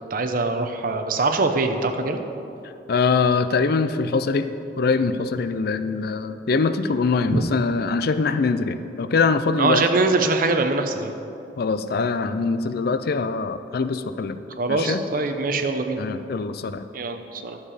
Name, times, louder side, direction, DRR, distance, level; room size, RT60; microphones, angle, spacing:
voice 1, 0.1-2.2 7.3-7.4 9.6-11.1 14.6-16.0 16.9-17.6, right 3 dB, 55° right, 6 dB, 0.7 m, -23 dB
voice 2, 2.9-4.5 4.8-9.8 11.6-14.4 14.7-15.0 16.0-16.8, left 4 dB, 60° left, 11 dB, 0.4 m, -23 dB
11.5 x 7.3 x 4.9 m, 2.7 s
head